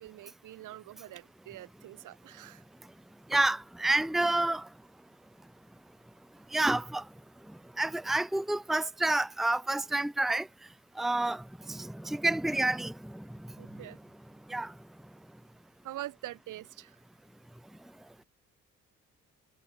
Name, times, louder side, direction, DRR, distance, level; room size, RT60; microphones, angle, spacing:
voice 1, 0.0-2.6 13.6-14.0 15.8-17.0, right 14 dB, 85° right, 7.6 m, -44 dB
voice 2, 3.3-4.6 6.5-7.0 7.8-10.5 11.0-13.2 14.5-14.7, right 2 dB, ahead, 0.8 m, -29 dB
cardioid pair, 90°, 30 cm